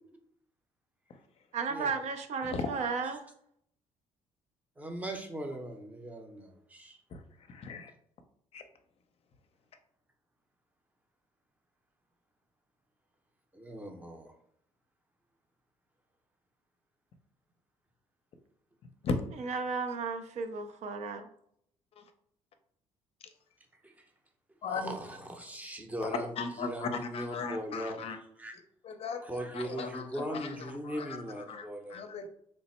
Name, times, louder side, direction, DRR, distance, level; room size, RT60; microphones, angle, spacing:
voice 1, 1.5-3.2 19.4-21.3, right 5 dB, 65° right, 7 dB, 0.5 m, -34 dB
voice 2, 4.8-7.0 13.5-14.3 23.8-23.9 24.7-28.5 29.2-32.0, right 1 dB, 10° right, 4 dB, 0.6 m, -39 dB
voice 3, 7.5-7.9 8.5-8.6 19.0-19.1 22.0-22.1 24.6-24.9 26.0-28.2 28.8-32.3, left 4 dB, 50° left, 7 dB, 0.5 m, -37 dB
3.2 x 2.0 x 4.1 m, 0.67 s
cardioid pair, 95°, 13 cm